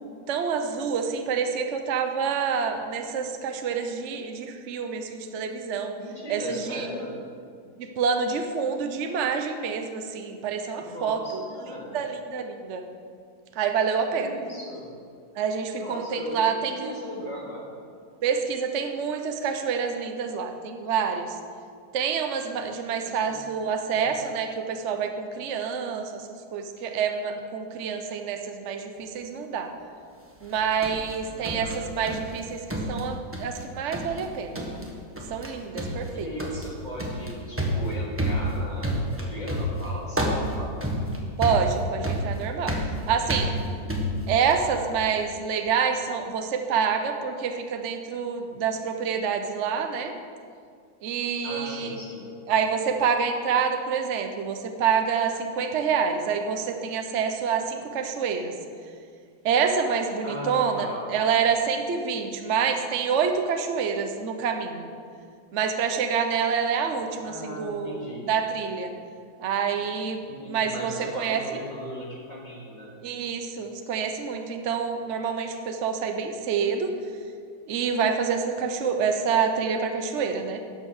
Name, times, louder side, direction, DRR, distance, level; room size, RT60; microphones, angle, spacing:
voice 1, 0.3-5.9 6.3-6.9 7.8-12.8 13.5-14.4 15.3-17.0 18.2-21.3 21.9-29.7 30.4-32.6 32.9-34.7 35.3-36.3 41.4-42.8 43.1-43.6 44.3-50.1 51.0-52.0 52.5-58.5 59.4-64.9 65.5-68.9 69.4-71.4 73.0-76.9 77.7-80.6, right 6 dB, 50° right, 5 dB, 0.9 m, -27 dB
voice 2, 5.9-7.1 10.8-12.0 14.2-14.9 15.8-17.7 23.0-23.4 23.9-24.2 31.3-32.2 36.1-40.8 44.1-44.8 51.4-52.3 60.2-61.0 67.2-68.3 70.2-72.9, equal, 20° left, -5 dB, 2.9 m, -38 dB
sound 1, 30.4-32.4 32.7-33.6 33.9-34.3 34.5-34.9 35.2-35.5 35.8-44.8, equal, 10° right, 1.1 m, -29 dB
12.0 x 7.6 x 6.6 m, 2.2 s
omnidirectional pair, 2.2 m